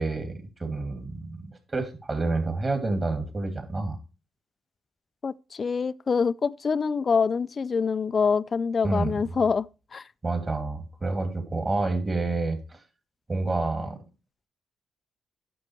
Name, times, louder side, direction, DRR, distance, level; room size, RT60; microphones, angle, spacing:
voice 1, 0.0-4.0 8.8-9.1 10.2-12.8 13.3-14.0, right 3 dB, 30° right, 2.5 m, -28 dB
voice 2, 5.2-10.0, left 5 dB, 40° left, 0.4 m, -25 dB
9.7 x 6.2 x 4.6 m
cardioid pair, 90°, 0 cm